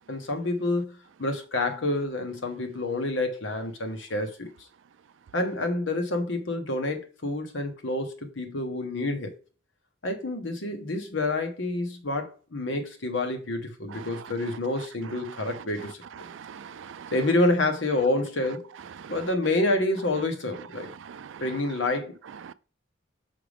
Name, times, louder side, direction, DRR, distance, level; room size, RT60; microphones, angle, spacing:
voice 1, 0.1-4.5 5.3-9.3 10.0-16.0 17.1-18.7 19.1-20.9 21.4-22.1, left 2 dB, 75° left, 1.2 m, -28 dB
voice 2, 16.3-17.1 19.0-19.1 21.0-21.4 22.5-22.6, right 7 dB, 75° right, 0.4 m, -43 dB
5.8 x 5.0 x 3.4 m
head